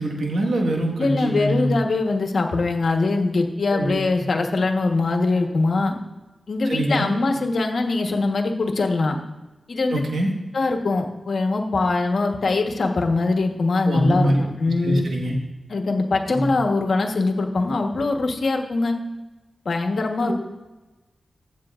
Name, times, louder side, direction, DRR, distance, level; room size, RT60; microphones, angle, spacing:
voice 1, 0.0-1.8 3.7-4.0 6.7-7.1 9.9-10.3 13.9-14.4 14.8-15.4 16.3-16.5, right 1 dB, 80° right, 1 dB, 1.6 m, -23 dB
voice 2, 1.0-5.9 6.5-9.2 9.7-10.0 10.5-15.1 15.7-18.9 19.6-20.3, left 3 dB, 70° left, 3 dB, 1.2 m, -22 dB
15.0 x 8.2 x 2.5 m, 1.1 s
cardioid pair, 50°, 0 cm